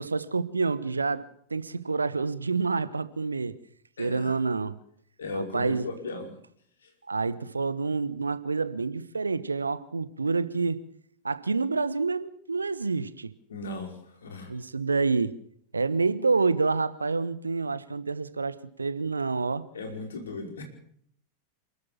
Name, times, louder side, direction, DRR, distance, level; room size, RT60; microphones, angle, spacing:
voice 1, 0.0-3.6 4.0-4.8 5.3-5.9 7.1-10.8 11.2-13.3 14.5-15.4 15.7-19.7, right 4 dB, 80° right, 1.1 m, -28 dB
voice 2, 4.0-4.3 5.2-6.3 6.8-6.9 13.5-14.5 19.7-20.6, left 2 dB, 70° left, 5.2 m, -37 dB
28.0 x 13.0 x 7.3 m
figure-of-eight pair, 90°, 0 cm